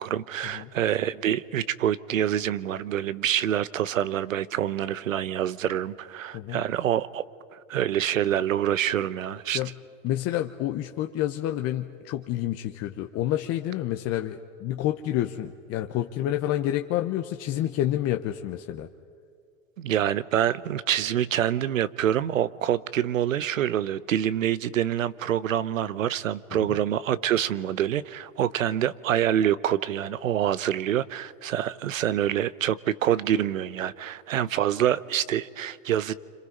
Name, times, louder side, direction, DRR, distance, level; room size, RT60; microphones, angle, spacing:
voice 1, 0.0-7.2 7.7-9.6 19.8-36.1, right 10 dB, 90° right, 18 dB, 0.9 m, -26 dB
voice 2, 10.0-18.9, left 13 dB, 40° left, 5 dB, 1.0 m, -28 dB
29.5 x 26.5 x 5.4 m, 2.3 s
hypercardioid pair, 110°, 39 cm